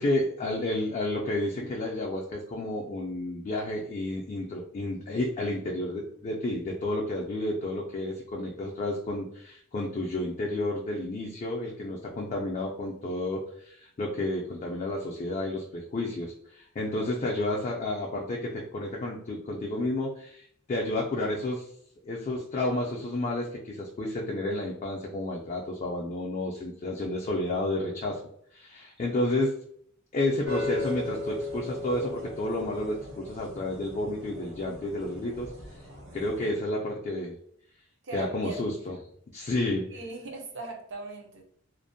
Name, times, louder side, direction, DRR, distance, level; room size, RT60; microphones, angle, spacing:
voice 1, 0.0-21.7 22.0-28.2 28.5-29.5 30.1-35.5 36.1-37.4 38.1-39.0 39.3-39.9, left 1 dB, 35° left, -2 dB, 0.3 m, -31 dB
sound 1, 30.4-36.5, left 3 dB, 85° right, 1.1 m, -37 dB
voice 2, 38.0-38.6 39.9-41.4, right 3 dB, 60° right, 3 dB, 0.5 m, -39 dB
2.5 x 2.1 x 2.5 m, 0.66 s
head